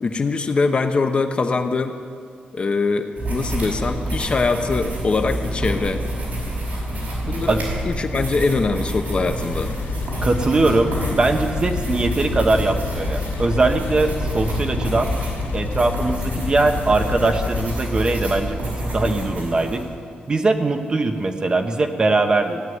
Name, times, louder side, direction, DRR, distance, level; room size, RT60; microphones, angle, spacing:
voice 1, 0.0-2.0 2.5-6.0 7.3-9.7, left 4 dB, 35° left, 7 dB, 0.8 m, -22 dB
sound 1, 3.2-19.8, right 1 dB, 55° right, 5.4 m, -27 dB
sound 2, 9.5-17.8, left 8 dB, 70° left, 0.4 m, -31 dB
voice 2, 10.2-15.1 15.5-19.8 20.3-22.6, right 2 dB, 25° right, 5 dB, 1.0 m, -21 dB
16.5 x 9.4 x 9.4 m, 2.2 s
wide cardioid pair, 180°, 3 cm